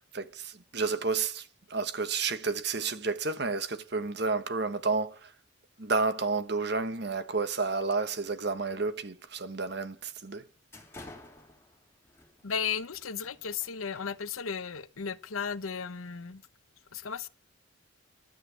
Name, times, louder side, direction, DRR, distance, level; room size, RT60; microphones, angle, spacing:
voice 1, 0.1-5.3 5.8-10.4, right 4 dB, 55° right, 1.3 m, -31 dB
sound 1, 8.3-8.7 9.1-9.3 9.9-10.0 10.4-14.6, left 2 dB, 10° left, 3.3 m, -53 dB
voice 2, 12.4-16.4 16.9-17.3, left 6 dB, 90° left, 0.9 m, -35 dB
12.5 x 7.8 x 8.0 m
head